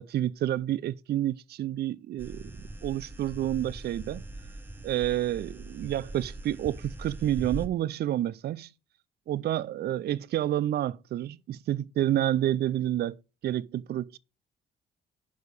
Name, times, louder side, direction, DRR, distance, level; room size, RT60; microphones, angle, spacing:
voice 1, 0.0-2.5 2.8-4.2 4.8-8.7 9.3-13.1 13.4-14.2, right 12 dB, 55° right, 0.4 m, -29 dB
sound 1, 2.2-7.7, right 2 dB, 10° right, 0.9 m, -41 dB
6.1 x 4.7 x 6.7 m
cardioid pair, 90°, 20 cm